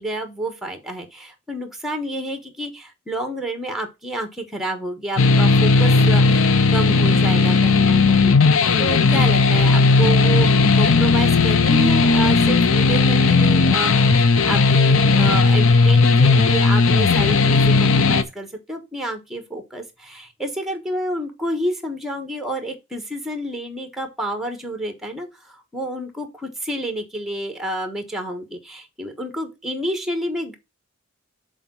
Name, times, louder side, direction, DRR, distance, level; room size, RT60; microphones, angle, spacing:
voice 1, 0.0-10.5 10.7-30.6, right 1 dB, ahead, 1.3 m, -29 dB
sound 1, 5.2-18.2, left 4 dB, 65° left, 0.7 m, -15 dB
7.0 x 4.0 x 6.2 m
head